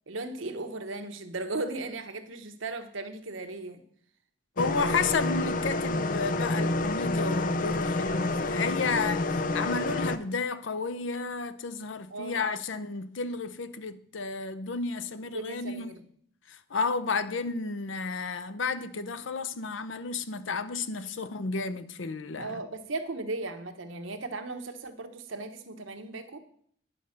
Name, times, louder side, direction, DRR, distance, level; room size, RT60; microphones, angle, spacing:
voice 1, 0.1-3.8 12.1-12.5 15.3-16.0 22.4-26.4, right 2 dB, 90° right, 1.1 m, -36 dB
voice 2, 4.6-15.9 16.5-22.6, left 4 dB, 80° left, 0.7 m, -32 dB
sound 1, 4.6-10.2, left 2 dB, 45° left, 0.5 m, -28 dB
10.0 x 5.4 x 6.5 m
head